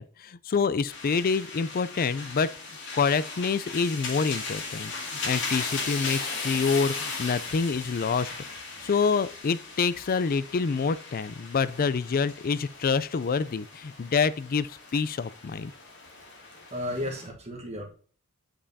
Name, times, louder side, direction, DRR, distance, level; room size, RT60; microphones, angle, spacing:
voice 1, 0.0-2.5 2.9-8.3 8.8-15.7, left 5 dB, 45° left, 0.4 m, -27 dB
sound 1, 0.9-17.3, left 3 dB, 60° left, 2.3 m, -37 dB
voice 2, 16.7-17.9, left 1 dB, 30° right, 1.3 m, -33 dB
8.7 x 5.3 x 2.7 m
head